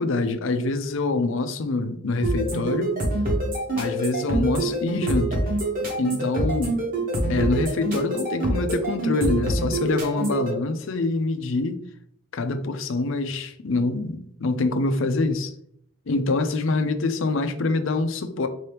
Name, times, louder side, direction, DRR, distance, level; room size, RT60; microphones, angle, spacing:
voice 1, 0.0-3.0 3.7-5.4 6.0-6.8 7.3-11.8 12.3-15.5 16.1-18.5, left 3 dB, 65° left, 9 dB, 0.5 m, -25 dB
sound 1, 2.2-10.5, right 2 dB, 40° right, 1.1 m, -25 dB
4.5 x 2.9 x 3.3 m, 0.69 s
head